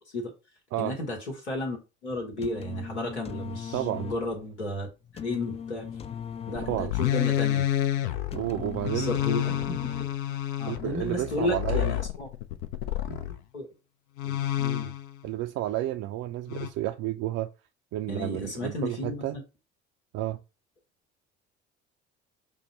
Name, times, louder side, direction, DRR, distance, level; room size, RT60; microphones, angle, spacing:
voice 1, 0.8-4.9 5.1-5.9 6.5-7.6 8.9-10.1 10.6-12.3 13.0-13.7 14.2-14.9 18.1-19.4, left 2 dB, 90° left, 1.2 m, -33 dB
sound 1, 2.2-10.4, left 7 dB, 20° left, 0.3 m, -40 dB
voice 2, 3.7-4.1 6.7-6.9 8.3-9.2 9.5-9.6 10.6-11.9 15.2-17.5 17.9-19.4 20.1-20.4, right 14 dB, 50° right, 0.4 m, -31 dB
sound 2, 6.6-13.4 14.2-15.2 16.5-16.7, left 12 dB, 70° left, 0.6 m, -29 dB
5.4 x 2.0 x 4.0 m
figure-of-eight pair, 55°, 33 cm